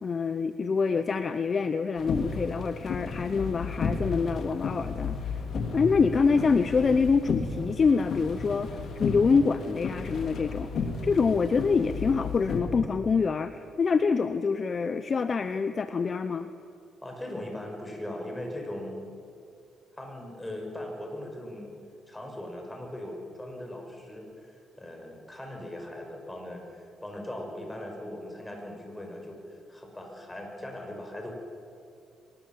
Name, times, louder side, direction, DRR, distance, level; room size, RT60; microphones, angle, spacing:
voice 1, 0.0-5.4 5.7-10.7 11.0-16.5, left 5 dB, 40° left, 11 dB, 0.8 m, -26 dB
sound 1, 2.0-12.6, left 4 dB, 60° left, 3.4 m, -33 dB
voice 2, 17.0-19.1 20.0-21.7 22.1-31.3, left 1 dB, 10° left, 2 dB, 5.8 m, -39 dB
23.5 x 19.5 x 7.5 m, 2.6 s
cardioid pair, 90°, 0 cm